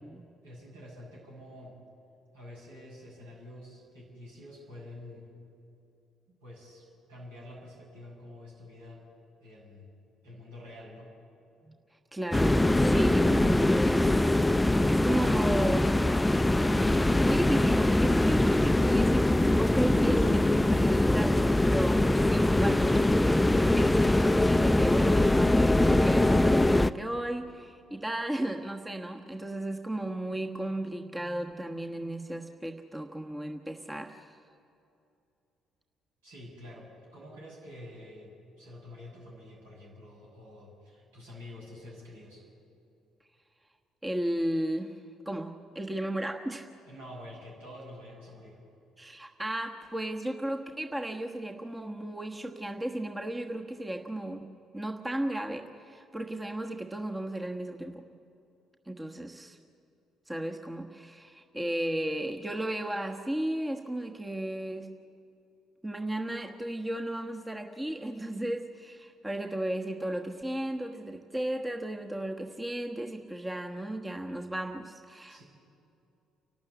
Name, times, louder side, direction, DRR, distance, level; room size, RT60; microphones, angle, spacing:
voice 1, 0.4-1.8 2.3-5.3 6.4-9.1 9.4-9.9 10.2-11.1 36.2-42.5 46.9-48.6 75.3-75.4, left 1 dB, 80° right, -5 dB, 7.0 m, -48 dB
voice 2, 11.6-19.3 19.6-34.4 44.0-45.0 45.2-46.7 49.0-54.5 54.7-58.0 58.9-59.6 60.3-64.9 65.8-75.4, right 1 dB, 15° right, 4 dB, 1.3 m, -34 dB
sound 1, 12.3-26.9, left 1 dB, 10° left, 0.5 m, -23 dB
29.5 x 12.5 x 8.2 m, 2.6 s
hypercardioid pair, 50°, 0 cm